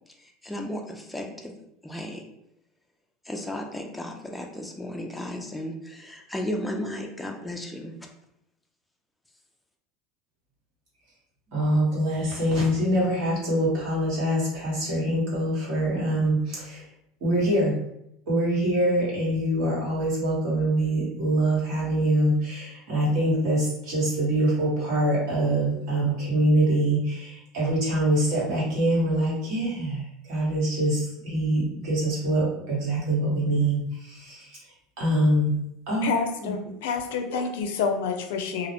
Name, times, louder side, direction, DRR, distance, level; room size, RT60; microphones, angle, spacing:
voice 1, 0.1-1.5 1.8-2.3 3.2-7.9, left 1 dB, 5° left, 1 dB, 0.3 m, -34 dB
voice 2, 11.5-16.8 17.2-17.7 18.3-34.6 35.0-35.5 35.9-36.1 36.4-36.5, right 1 dB, 65° right, -6 dB, 1.3 m, -24 dB
voice 3, 36.0-38.7, left 6 dB, 85° left, 5 dB, 0.4 m, -28 dB
2.4 x 2.0 x 2.8 m, 0.78 s
supercardioid pair, 120°, 0 cm